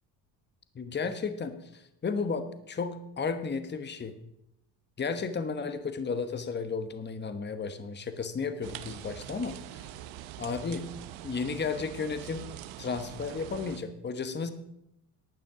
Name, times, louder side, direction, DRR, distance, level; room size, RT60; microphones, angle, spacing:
voice 1, 0.7-4.1 5.0-9.9 10.4-10.9 11.2-12.4 12.8-14.5, left 5 dB, 20° left, 9 dB, 1.1 m, -33 dB
sound 1, 8.6-13.8, right 12 dB, 75° right, 0.9 m, -43 dB
12.5 x 9.0 x 4.9 m, 0.80 s
supercardioid pair, 90°, 47 cm